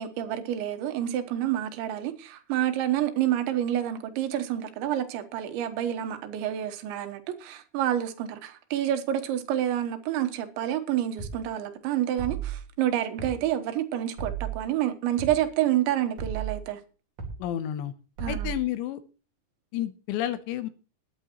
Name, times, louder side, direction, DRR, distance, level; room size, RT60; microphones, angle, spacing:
voice 1, 0.0-16.8 18.2-18.5, right 11 dB, 80° right, 3.4 m, -28 dB
sound 1, 11.2-11.4 12.2-12.6 13.2-13.4 14.2-14.6 15.2-15.4 16.2-16.6 17.2-17.4 18.2-18.6, right 8 dB, 45° right, 3.7 m, -33 dB
voice 2, 17.4-17.9 18.3-19.0 19.7-20.7, left 12 dB, 80° left, 2.9 m, -30 dB
20.0 x 8.9 x 2.9 m
omnidirectional pair, 5.3 m